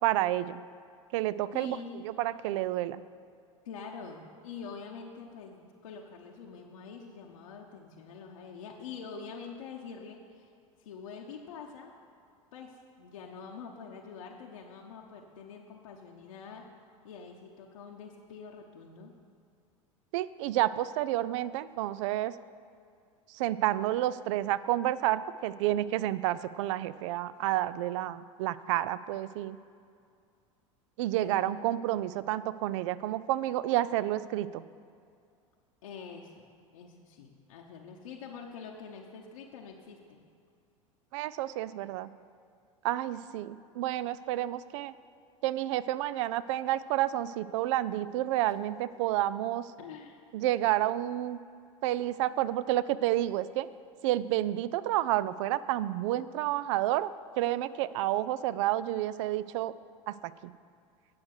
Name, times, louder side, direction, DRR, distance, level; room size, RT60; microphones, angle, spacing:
voice 1, 0.0-0.6 1.1-1.8 2.0-3.0 20.1-22.4 23.3-29.6 31.0-34.6 41.1-42.1 42.8-44.9 45.4-49.7 50.3-51.4 51.8-53.7 54.0-57.1 57.4-59.7 60.1-60.3, right 14 dB, 60° right, 16 dB, 0.4 m, -30 dB
voice 2, 1.5-2.0 3.6-10.5 10.8-12.0 12.5-16.7 17.0-19.1 31.2-31.6 35.8-36.5 36.7-40.3 49.8-50.2, left 5 dB, 75° left, -1 dB, 0.9 m, -45 dB
9.5 x 6.6 x 6.5 m, 2.3 s
hypercardioid pair, 85°, 17 cm